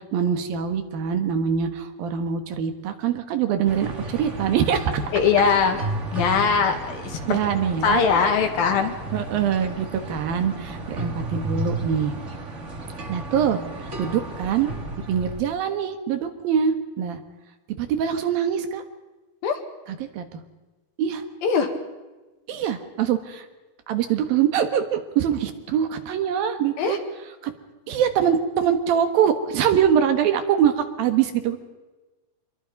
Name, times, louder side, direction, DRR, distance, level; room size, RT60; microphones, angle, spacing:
voice 1, 0.0-5.0 7.3-8.0 9.1-12.2 13.1-13.6 14.0-14.7 15.1-17.2 17.8-18.8 19.9-20.4 21.0-21.2 22.5-23.5 23.9-27.0 27.4-27.5 27.9-31.6, right 8 dB, 70° right, 8 dB, 3.2 m, -23 dB
sound 1, 3.6-15.4, right 2 dB, 30° right, 1.4 m, -33 dB
voice 2, 5.1-5.8 6.1-7.4 7.8-8.9 19.4-19.6 21.4-21.7 26.8-27.0, left 6 dB, 70° left, 5 dB, 3.7 m, -21 dB
27.0 x 22.0 x 5.3 m, 1.2 s
omnidirectional pair, 4.4 m